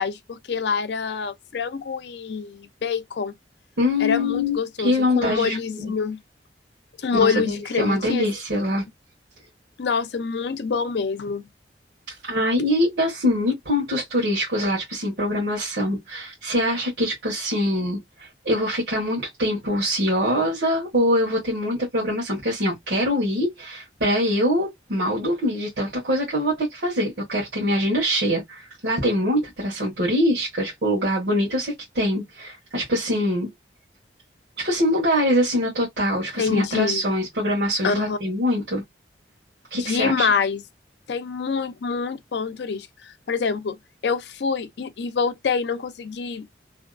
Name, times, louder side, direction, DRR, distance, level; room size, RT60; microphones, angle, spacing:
voice 1, 0.0-3.3 4.0-6.2 7.0-8.3 9.8-11.5 36.4-37.0 37.8-38.2 39.7-40.6 41.1-43.8 44.0-46.5, left 5 dB, 70° left, 0.5 m, -26 dB
voice 2, 3.8-5.6 7.1-8.8 12.2-33.5 34.6-38.8 39.7-40.3, left 1 dB, 80° right, 1.1 m, -23 dB
2.7 x 2.2 x 2.4 m
head